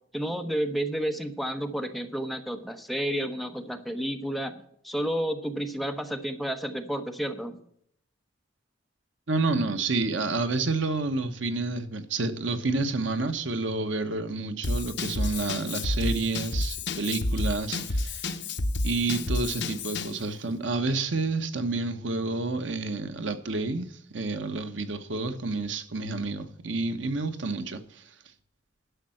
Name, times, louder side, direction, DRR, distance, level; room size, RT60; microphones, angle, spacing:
voice 1, 0.1-7.6, equal, ahead, 1.0 m, -31 dB
voice 2, 9.3-18.3 18.8-28.0, right 3 dB, 75° right, 1.1 m, -29 dB
Drum kit / Drum, 14.6-20.2, left 2 dB, 65° left, 0.9 m, -30 dB
11.5 x 6.8 x 7.7 m
head